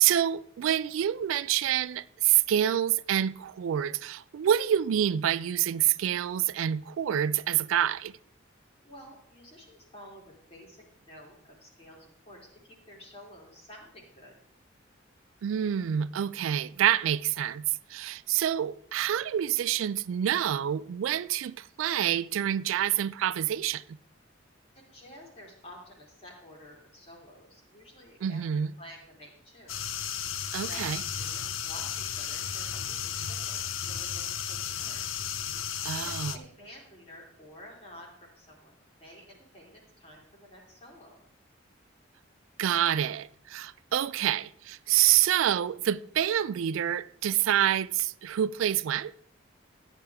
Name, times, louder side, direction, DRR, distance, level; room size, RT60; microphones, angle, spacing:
voice 1, 0.0-8.1 15.4-23.8 28.2-28.7 30.5-31.0 35.8-36.3 42.6-49.1, right 10 dB, 80° right, 0.3 m, -27 dB
voice 2, 8.8-14.3 24.7-29.8 30.6-35.1 35.9-41.2, equal, 30° left, 3.0 m, -51 dB
sound 1, 29.7-36.4, left 8 dB, 90° left, 0.7 m, -34 dB
14.0 x 9.3 x 3.5 m
head